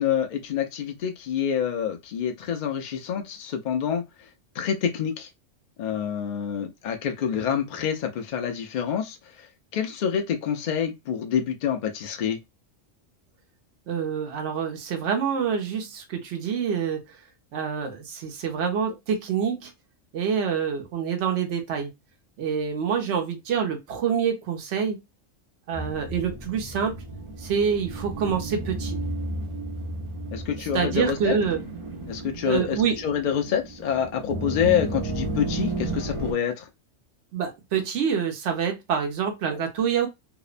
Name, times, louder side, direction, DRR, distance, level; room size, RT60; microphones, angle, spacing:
voice 1, 0.0-4.0 4.6-5.3 5.8-9.2 9.7-12.4 30.3-31.3 32.1-36.7, left 8 dB, 60° left, 0.5 m, -27 dB
voice 2, 13.9-17.0 17.5-19.7 20.1-21.9 22.4-25.0 25.7-26.9 27.4-29.0 30.6-31.6 32.4-33.0 37.3-40.1, right 7 dB, 70° right, 1.0 m, -26 dB
sound 1, 25.7-36.3, right 2 dB, 40° right, 0.5 m, -33 dB
2.8 x 2.0 x 2.4 m
omnidirectional pair, 1.3 m